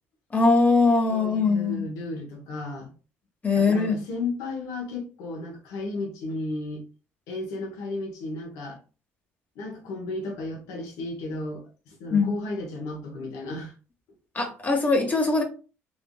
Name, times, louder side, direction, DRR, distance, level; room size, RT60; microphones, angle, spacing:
voice 1, 0.3-1.8 3.4-4.0 12.1-12.3 14.3-15.4, left 3 dB, 30° left, 0.9 m, -21 dB
voice 2, 1.1-2.9 3.6-6.8 7.3-8.8 9.6-13.7, left 2 dB, 75° left, 1.0 m, -34 dB
3.4 x 2.6 x 2.2 m
supercardioid pair, 65°, 6 cm